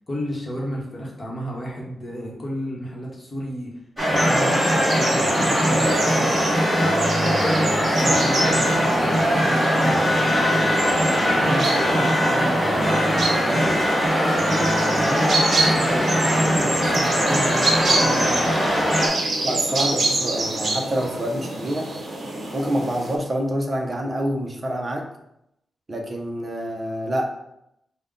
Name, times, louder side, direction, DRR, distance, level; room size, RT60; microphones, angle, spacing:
voice 1, 0.1-3.7 4.1-6.3 6.8-10.7 11.1-13.9 14.3-18.5, equal, 20° left, -3 dB, 1.0 m, -32 dB
sound 1, 4.0-19.1, equal, 5° right, 1.5 m, -21 dB
sound 2, 4.1-23.1, right 2 dB, 50° right, 0.8 m, -27 dB
voice 2, 19.4-21.9 22.5-25.1 25.9-27.2, equal, 25° right, 2 dB, 0.6 m, -26 dB
5.2 x 2.1 x 3.6 m, 0.79 s
wide cardioid pair, 165°, 0 cm